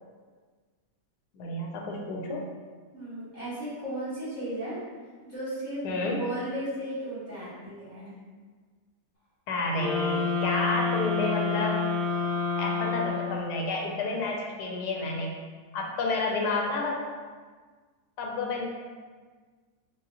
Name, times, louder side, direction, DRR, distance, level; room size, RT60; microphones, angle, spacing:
voice 1, 1.3-2.4 5.8-6.2 9.5-11.9 12.6-15.4 15.7-17.0 18.2-18.7, left 3 dB, 80° left, 0 dB, 1.1 m, -30 dB
voice 2, 2.9-4.8 5.2-5.9 6.1-8.2, right 1 dB, 30° right, -12 dB, 1.4 m, -35 dB
sound 1, 9.8-13.7, left 4 dB, 20° left, 0.5 m, -29 dB
4.8 x 2.4 x 2.7 m, 1.5 s
omnidirectional pair, 1.8 m